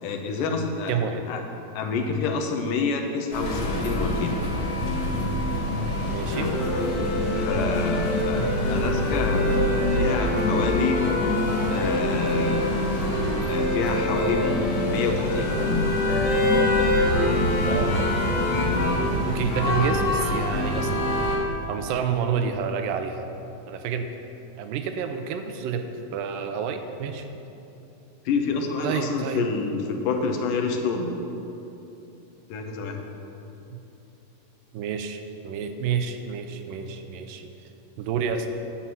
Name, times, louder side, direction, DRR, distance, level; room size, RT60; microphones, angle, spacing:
voice 1, 0.0-1.0 1.3-1.4 1.7-4.4 6.3-6.5 7.3-11.0 11.7-12.7 13.5-16.0 18.6-18.9 28.3-31.1 32.5-33.0, left 4 dB, 80° left, 3 dB, 2.4 m, -28 dB
voice 2, 0.9-1.2 6.1-6.5 17.6-18.0 19.3-20.9 21.7-23.3 23.7-24.1 24.6-27.3 28.8-29.4 33.7-33.8 34.7-37.5 38.0-38.5, right 7 dB, 90° right, 7 dB, 2.3 m, -29 dB
sound 1, 3.3-21.4, left 1 dB, 60° left, 3.1 m, -24 dB
9.9 x 5.6 x 7.6 m, 2.9 s
omnidirectional pair, 3.9 m